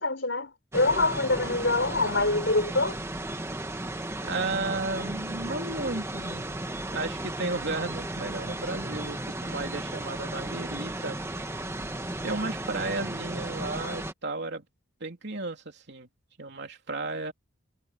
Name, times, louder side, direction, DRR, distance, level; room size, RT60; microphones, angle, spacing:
voice 1, 0.0-3.0, left 2 dB, 60° left, 5.1 m, -25 dB
sound 1, 0.7-14.1, right 1 dB, 15° right, 1.5 m, -35 dB
voice 2, 4.2-6.4 6.9-11.2 12.2-14.6 15.0-16.1 16.4-17.3, right 3 dB, 55° right, 3.3 m, -33 dB
head